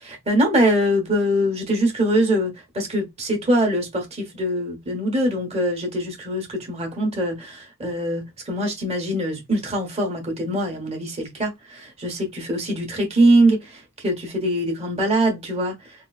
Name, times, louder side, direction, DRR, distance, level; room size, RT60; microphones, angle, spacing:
voice 1, 0.0-13.6 14.0-15.8, right 1 dB, 30° right, 1.0 m, -23 dB
3.7 x 2.4 x 2.3 m
head